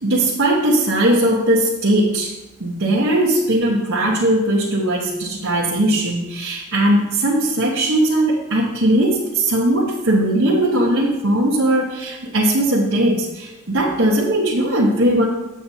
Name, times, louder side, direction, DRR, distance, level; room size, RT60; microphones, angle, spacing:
voice 1, 0.0-2.3 2.6-15.3, right 1 dB, 75° right, -5 dB, 1.2 m, -19 dB
8.5 x 7.6 x 2.8 m, 1.0 s
head